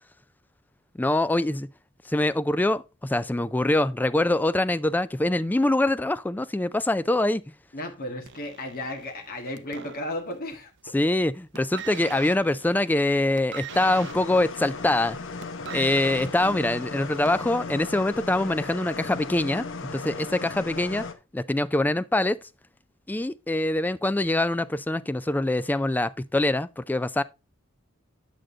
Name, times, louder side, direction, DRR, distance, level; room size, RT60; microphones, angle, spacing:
voice 1, 1.0-1.7 2.1-7.4 10.9-15.2 15.7-21.1 21.3-22.4 23.1-27.2, left 2 dB, 10° left, 0.3 m, -24 dB
voice 2, 7.7-10.7, left 1 dB, 50° left, 1.6 m, -34 dB
sound 1, 8.3-10.6 10.9-11.2 11.5-17.5 18.3-18.4, right 7 dB, 60° right, 0.7 m, -42 dB
sound 2, 13.7-21.1, left 4 dB, 65° left, 0.9 m, -36 dB
8.9 x 6.4 x 3.7 m
head